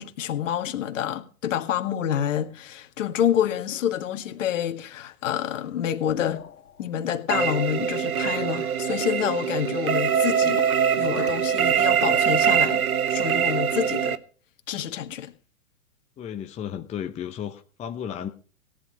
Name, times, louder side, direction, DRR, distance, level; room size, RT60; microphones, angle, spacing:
voice 1, 0.0-6.4 6.8-10.6 11.0-12.8 13.1-14.2 14.7-15.3, left 10 dB, 60° left, 2.0 m, -28 dB
sound 1, 6.1-6.9 7.7-7.8 8.4-8.8 10.2-10.5 10.8-11.6, left 7 dB, 85° left, 2.2 m, -40 dB
sound 2, 7.3-14.2, right 8 dB, 75° right, 1.3 m, -23 dB
voice 2, 16.2-18.3, left 9 dB, 15° left, 0.8 m, -33 dB
17.5 x 11.0 x 5.1 m
hypercardioid pair, 120°, 43 cm